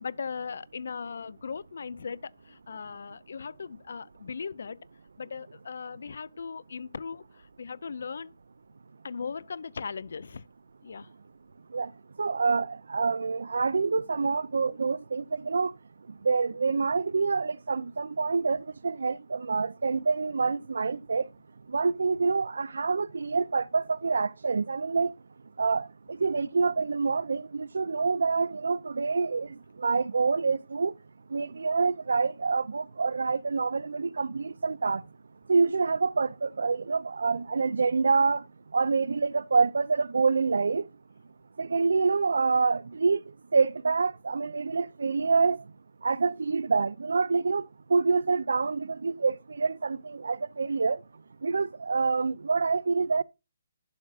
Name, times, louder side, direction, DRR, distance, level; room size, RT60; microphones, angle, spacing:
voice 1, 0.0-4.9 5.2-8.3 9.0-10.5 10.8-11.1, left 5 dB, 55° left, 0.4 m, -38 dB
voice 2, 12.2-15.7 16.2-21.2 21.7-25.1 25.6-29.5 29.8-30.9 31.3-35.0 35.5-38.4 38.7-40.8 41.6-43.2 43.5-45.6 46.0-47.6 47.9-51.0 51.4-53.2, right 4 dB, 90° right, 0.5 m, -26 dB
11.5 x 6.0 x 2.4 m
hypercardioid pair, 180°, 0 cm